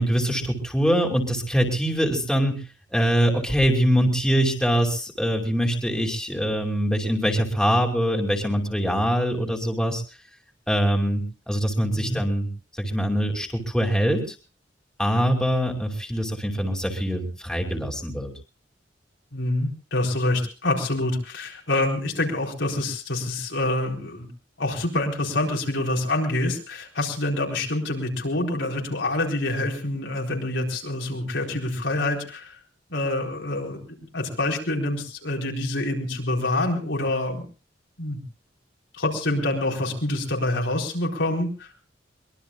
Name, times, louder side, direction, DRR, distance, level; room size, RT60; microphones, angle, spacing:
voice 1, 0.0-2.6 2.9-10.0 10.7-12.5 12.7-14.3 15.0-18.3, equal, 5° left, 1 dB, 2.6 m, -23 dB
voice 2, 19.3-24.3 24.6-32.6 32.9-33.8 34.1-37.4 38.0-38.2 39.0-41.7, left 2 dB, 90° left, -1 dB, 4.4 m, -26 dB
23.5 x 21.5 x 2.4 m, 0.35 s
head